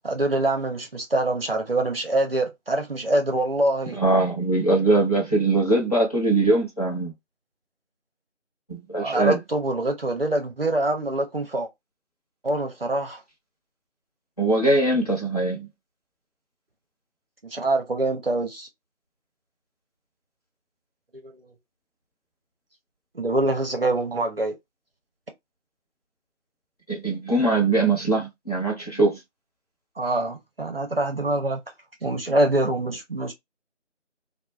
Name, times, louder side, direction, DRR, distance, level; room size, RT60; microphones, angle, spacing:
voice 1, 0.0-4.0 9.0-11.7 12.4-13.2 17.4-18.7 21.1-21.4 23.1-24.5 30.0-31.6 32.0-33.3, right 1 dB, 50° right, 0.7 m, -25 dB
voice 2, 4.0-7.1 8.7-9.4 14.4-15.7 26.9-29.2, right 2 dB, 30° left, 0.9 m, -21 dB
2.4 x 2.1 x 3.0 m
figure-of-eight pair, 165°, 37 cm